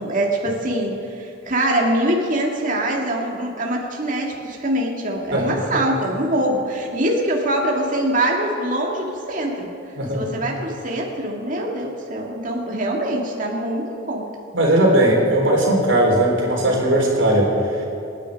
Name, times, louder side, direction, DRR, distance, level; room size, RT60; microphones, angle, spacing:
voice 1, 0.0-9.7 10.1-14.2, right 1 dB, 40° right, -1 dB, 2.1 m, -23 dB
voice 2, 10.0-10.3 14.5-17.9, right 1 dB, 70° right, -2 dB, 3.8 m, -18 dB
27.5 x 9.7 x 5.2 m, 2.9 s
head